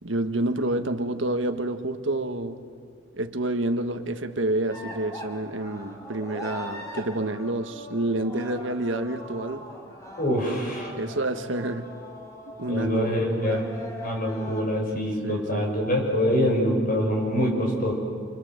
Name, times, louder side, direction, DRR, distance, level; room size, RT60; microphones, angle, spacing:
voice 1, 0.0-2.6 3.1-9.7 10.3-10.4 10.9-11.9 12.6-13.6 15.2-15.7, right 1 dB, 80° right, 8 dB, 1.6 m, -28 dB
sound 1, 4.7-14.6, left 1 dB, 15° left, 4.6 m, -41 dB
voice 2, 10.2-10.9 12.7-13.7 14.0-17.9, equal, 45° left, 1 dB, 6.5 m, -25 dB
28.5 x 25.5 x 8.1 m, 2.1 s
head